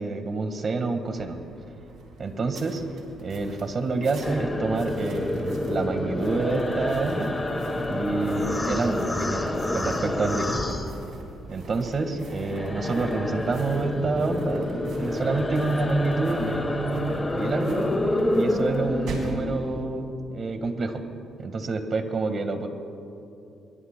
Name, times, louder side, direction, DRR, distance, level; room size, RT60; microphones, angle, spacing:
voice 1, 0.0-1.4 2.2-2.8 3.2-7.3 7.9-10.6 11.5-17.9 18.3-21.0 21.4-22.7, right 3 dB, 45° right, 7 dB, 1.6 m, -28 dB
sound 1, 1.0-19.4, right 4 dB, 75° right, 3.9 m, -45 dB
sound 2, 4.2-11.5 11.8-19.8, left 1 dB, 15° left, 1.7 m, -28 dB
24.5 x 22.0 x 2.3 m, 2.6 s
cardioid pair, 90°, 0 cm